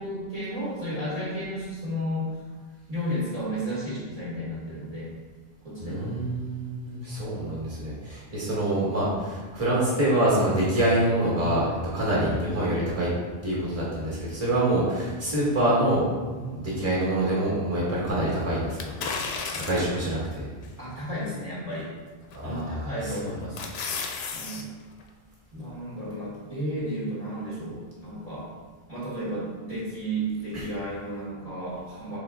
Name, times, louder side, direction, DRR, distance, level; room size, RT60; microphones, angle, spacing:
voice 1, 0.0-2.3 2.9-5.1 5.6-6.1 16.3-16.7 20.8-21.9 22.4-23.6 24.3-24.7 25.5-28.5 28.9-32.2, equal, 35° right, -9 dB, 1.2 m, -33 dB
voice 2, 5.8-13.1 13.4-16.1 16.5-18.9 19.5-20.5 22.3-22.9 30.5-30.6, right 1 dB, 15° right, -6 dB, 1.3 m, -26 dB
sound 1, 18.8-20.0 20.6-20.7 22.3-22.6 23.1-24.6 25.0-25.1, left 5 dB, 75° left, 0.8 m, -33 dB
4.3 x 3.3 x 3.6 m, 1.4 s
omnidirectional pair, 1.1 m